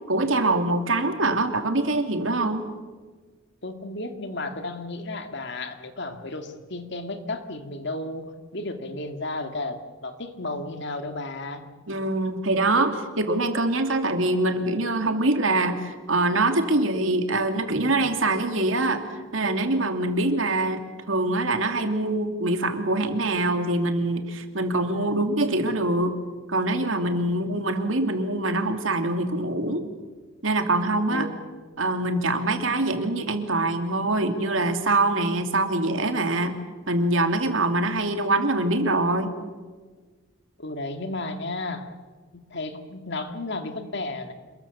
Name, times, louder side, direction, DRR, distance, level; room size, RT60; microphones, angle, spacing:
voice 1, 0.1-2.6 11.9-20.8 21.1-26.1 26.5-29.8 30.4-31.3 31.8-36.6 36.9-39.3, right 2 dB, 80° right, 6 dB, 2.7 m, -24 dB
voice 2, 3.6-11.6 24.9-25.2 27.3-27.5 31.1-31.3 40.6-41.9 42.5-44.3, left 2 dB, 65° left, 7 dB, 2.2 m, -33 dB
27.5 x 21.5 x 7.3 m, 1.4 s
head